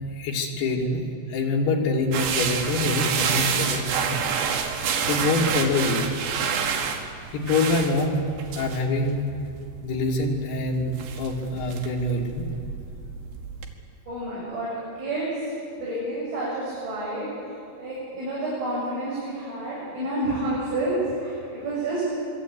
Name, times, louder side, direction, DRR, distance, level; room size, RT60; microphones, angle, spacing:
voice 1, 0.2-4.2 4.7-4.8 5.1-6.0 7.3-8.3 8.6-9.3 9.8-12.5, left 2 dB, 70° left, 0 dB, 4.8 m, -25 dB
sound 1, 2.1-13.7, right 6 dB, 80° right, 4.1 m, -29 dB
voice 2, 14.1-15.3 15.8-17.3 17.8-22.0, right 1 dB, 55° right, -7 dB, 9.4 m, -29 dB
25.5 x 23.5 x 8.8 m, 2.4 s
omnidirectional pair, 5.0 m